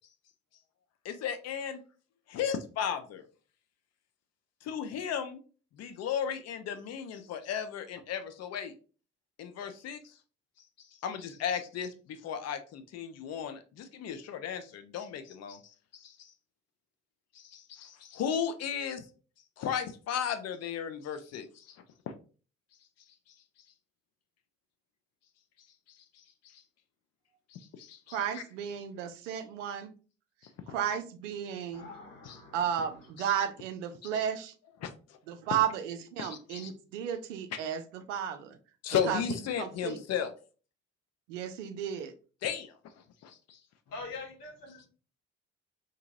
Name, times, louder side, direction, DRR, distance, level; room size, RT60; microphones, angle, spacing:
voice 1, 1.0-1.8 2.3-3.2 4.6-5.4 5.8-8.7 9.4-10.1 11.0-15.6 15.9-16.3 17.3-19.1 19.6-22.1 25.9-26.6 27.5-28.2 30.7-30.8 32.3-32.4 34.8-34.9 36.2-36.7 38.8-40.3 42.4-42.7 43.2-43.6, left 8 dB, 45° left, 8 dB, 0.5 m, -35 dB
voice 2, 28.1-29.9 30.7-31.9 32.5-34.5 35.3-38.6 39.1-40.0 41.3-42.1, right 9 dB, 75° right, 9 dB, 0.5 m, -34 dB
voice 3, 31.7-33.1 43.9-44.9, left 3 dB, 60° left, 1 dB, 1.1 m, -45 dB
2.8 x 2.6 x 2.5 m, 0.37 s
figure-of-eight pair, 45°, 37 cm